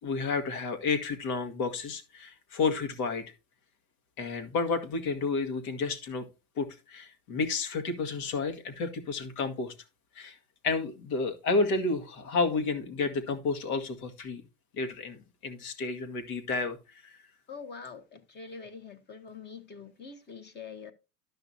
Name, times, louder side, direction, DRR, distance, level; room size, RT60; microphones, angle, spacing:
voice 1, 0.0-3.2 4.2-6.2 6.6-9.7 10.1-10.4 10.6-14.4 14.7-17.2, left 4 dB, 70° left, 2.0 m, -31 dB
voice 2, 17.5-20.9, left 5 dB, 20° left, 1.2 m, -44 dB
12.5 x 5.9 x 2.7 m
hypercardioid pair, 110°, 46 cm